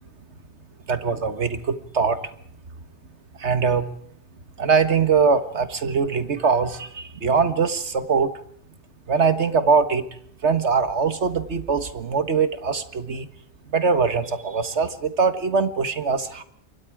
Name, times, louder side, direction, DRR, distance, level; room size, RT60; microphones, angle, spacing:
voice 1, 0.9-2.2 3.4-3.9 4.6-8.3 9.1-10.1 10.4-13.3 13.7-16.4, right 5 dB, 85° right, 11 dB, 1.9 m, -22 dB
28.0 x 23.5 x 4.9 m, 0.65 s
omnidirectional pair, 1.1 m